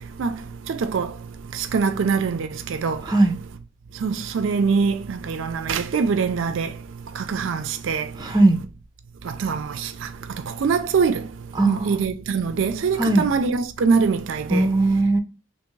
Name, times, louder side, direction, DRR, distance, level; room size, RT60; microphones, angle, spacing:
voice 1, 0.7-1.1 1.5-3.0 4.0-6.8 7.1-8.1 9.2-10.1 10.3-11.3 11.6-14.7, right 5 dB, 70° right, 0.4 m, -23 dB
voice 2, 3.0-3.4 8.2-8.6 11.5-11.9 13.0-13.2 14.5-15.2, right 2 dB, 20° right, 0.6 m, -18 dB
3.4 x 2.9 x 3.1 m
head